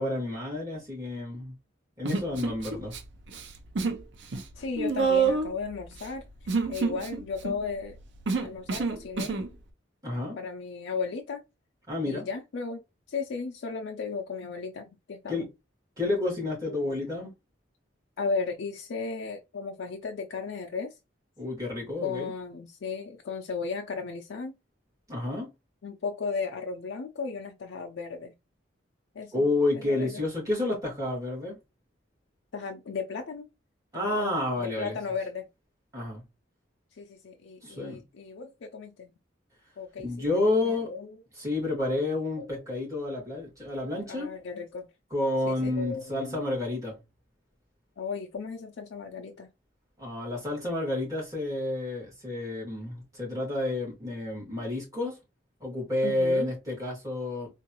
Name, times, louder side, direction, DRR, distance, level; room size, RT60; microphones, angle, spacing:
voice 1, 0.0-1.5 2.0-2.9 10.0-10.4 11.9-12.3 15.3-15.4 16.0-17.3 21.4-22.3 25.1-25.5 29.3-31.6 33.9-34.9 35.9-36.2 37.6-38.0 40.0-40.9 41.3-44.3 45.1-47.0 50.0-55.2 55.6-57.5, left 2 dB, 20° right, 2.1 m, -30 dB
Human voice, 2.0-3.0 3.3-4.0 4.3-9.5, right 4 dB, 70° right, 0.6 m, -28 dB
voice 2, 4.5-6.3 6.7-8.0 8.4-9.4 10.4-11.4 12.0-12.8 13.1-15.5 16.6-17.1 18.2-21.0 22.0-24.5 25.8-28.3 29.1-29.4 29.7-30.2 32.5-33.5 33.9-35.5 36.9-39.1 39.8-40.1 40.6-41.2 42.4-42.6 44.1-44.9 45.5-46.4 48.0-49.5 56.0-56.5, left 4 dB, 80° left, 0.4 m, -35 dB
3.8 x 2.5 x 2.9 m
head